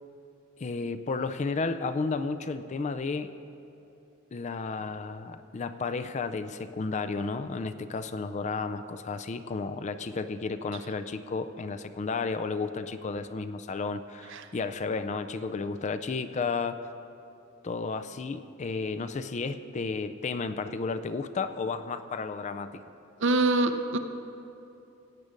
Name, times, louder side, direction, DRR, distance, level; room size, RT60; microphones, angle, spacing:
voice 1, 0.6-3.3 4.3-16.8 17.6-22.8, left 4 dB, 35° left, 10 dB, 0.4 m, -32 dB
voice 2, 23.2-24.0, right 2 dB, 60° right, 7 dB, 0.7 m, -24 dB
16.5 x 8.4 x 5.2 m, 2.8 s
head